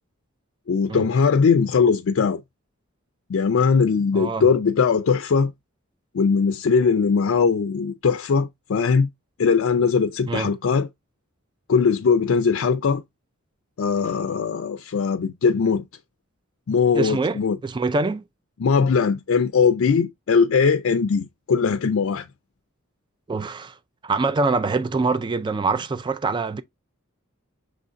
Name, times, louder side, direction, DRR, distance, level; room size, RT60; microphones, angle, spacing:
voice 1, 0.7-2.4 3.3-5.5 6.1-9.1 9.4-10.9 11.7-13.0 13.8-15.8 16.7-17.6 18.6-22.3, left 5 dB, 65° left, 0.4 m, -20 dB
voice 2, 4.1-4.5 10.3-10.5 16.9-18.2 23.3-23.8 24.0-26.6, right 3 dB, 20° right, 0.3 m, -24 dB
6.7 x 3.1 x 2.5 m
head